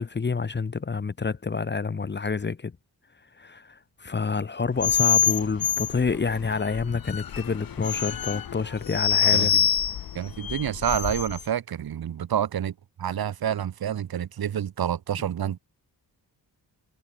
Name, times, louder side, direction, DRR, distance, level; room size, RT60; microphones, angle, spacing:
voice 1, 0.0-2.8 3.4-9.5, left 4 dB, 25° left, 1.0 m, -28 dB
sound 1, 4.8-11.4, left 9 dB, 60° left, 1.9 m, -26 dB
voice 2, 9.3-9.7 10.1-15.6, right 9 dB, 60° right, 1.5 m, -28 dB
cardioid pair, 110°, 40 cm